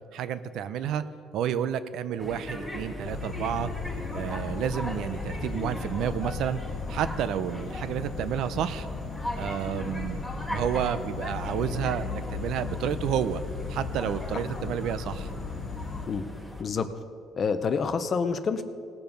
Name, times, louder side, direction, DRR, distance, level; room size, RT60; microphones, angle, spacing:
voice 1, 0.1-1.0 1.3-3.7 4.1-6.6 6.9-8.9 9.3-10.2 10.5-13.4 13.7-15.3, right 9 dB, 60° right, 13 dB, 0.5 m, -30 dB
sound 1, 2.2-16.6, left 1 dB, ahead, 1.6 m, -38 dB
Insect, 3.0-16.0, left 5 dB, 60° left, 1.1 m, -37 dB
voice 2, 17.3-18.6, left 5 dB, 30° left, 10 dB, 0.6 m, -27 dB
18.5 x 7.0 x 5.3 m, 2.5 s
cardioid pair, 160°, 0 cm